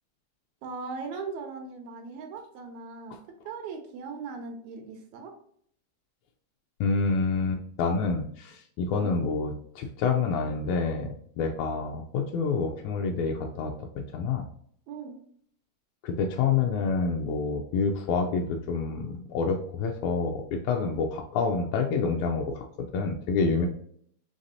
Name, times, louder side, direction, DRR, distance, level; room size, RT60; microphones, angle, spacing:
voice 1, 0.6-3.2 3.5-5.3 8.9-9.2 14.9-15.2, right 4 dB, 85° right, 4 dB, 2.1 m, -39 dB
voice 2, 6.8-11.1 11.4-14.5 16.0-22.7 22.9-23.7, left 4 dB, 85° left, 2 dB, 1.9 m, -28 dB
5.2 x 3.3 x 2.7 m, 0.63 s
omnidirectional pair, 3.3 m